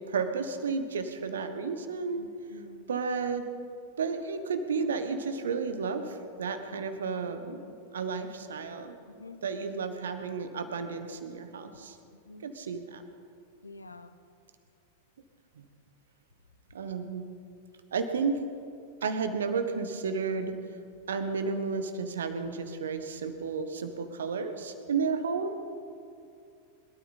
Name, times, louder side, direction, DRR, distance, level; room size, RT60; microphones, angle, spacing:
voice 1, 0.1-2.3 2.9-3.4 4.0-8.9 9.4-12.0 12.4-13.0 16.7-17.2 17.9-18.5 19.0-20.5 21.1-25.6, right 5 dB, 65° right, 8 dB, 1.4 m, -32 dB
voice 2, 2.2-2.8 9.1-9.4 12.3-12.4 13.6-14.1, left 3 dB, 80° left, 10 dB, 0.9 m, -48 dB
22.5 x 13.0 x 4.2 m, 2.4 s
figure-of-eight pair, 90°, 0 cm